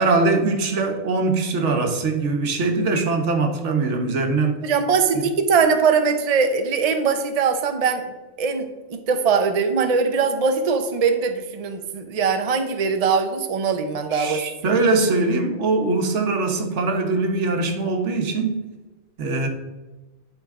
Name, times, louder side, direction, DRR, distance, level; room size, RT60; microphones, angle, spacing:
voice 1, 0.0-4.7 5.1-5.3 14.1-18.6 19.2-19.5, right 3 dB, 90° right, 4 dB, 1.3 m, -22 dB
voice 2, 4.6-8.1 8.4-14.7, right 5 dB, 40° right, 6 dB, 0.7 m, -21 dB
11.5 x 4.0 x 3.6 m, 1.2 s
omnidirectional pair, 1.2 m